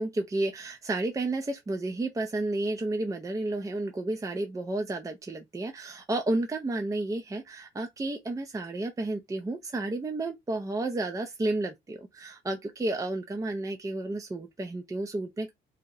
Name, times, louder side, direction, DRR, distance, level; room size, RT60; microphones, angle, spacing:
voice 1, 0.0-15.5, right 2 dB, 15° right, 0.5 m, -31 dB
2.7 x 2.0 x 3.8 m
cardioid pair, 90°, 20 cm